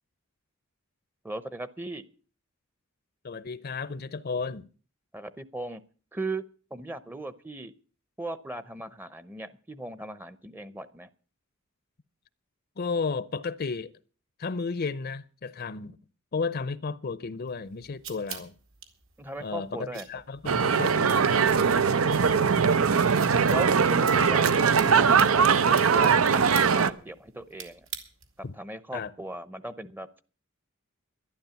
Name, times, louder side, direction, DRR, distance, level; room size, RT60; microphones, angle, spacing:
voice 1, 1.2-2.1 5.1-5.8 6.1-6.4 6.7-7.7 8.2-11.1 19.2-20.1 23.5-25.6 25.9-27.9 28.6-30.2, right 2 dB, 10° right, 0.7 m, -38 dB
voice 2, 3.2-4.7 12.8-13.9 14.4-16.0 16.3-18.5 19.4-21.5 28.4-28.5 28.9-29.1, left 4 dB, 45° left, 0.6 m, -33 dB
sound 1, 17.5-28.5, right 8 dB, 70° right, 2.3 m, -46 dB
sound 2, 20.5-26.9, right 6 dB, 90° right, 0.7 m, -21 dB
12.0 x 11.5 x 7.0 m
head